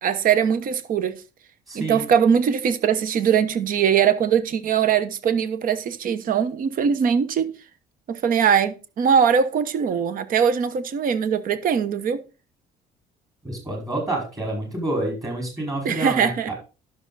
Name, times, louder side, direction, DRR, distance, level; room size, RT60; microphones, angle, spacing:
voice 1, 0.0-1.2 1.7-7.5 8.1-12.2 15.8-16.5, right 7 dB, 55° right, 1.0 m, -21 dB
voice 2, 1.7-2.0 13.4-16.5, right 1 dB, 20° right, 4.9 m, -28 dB
11.5 x 6.3 x 4.0 m
cardioid pair, 110°, 17 cm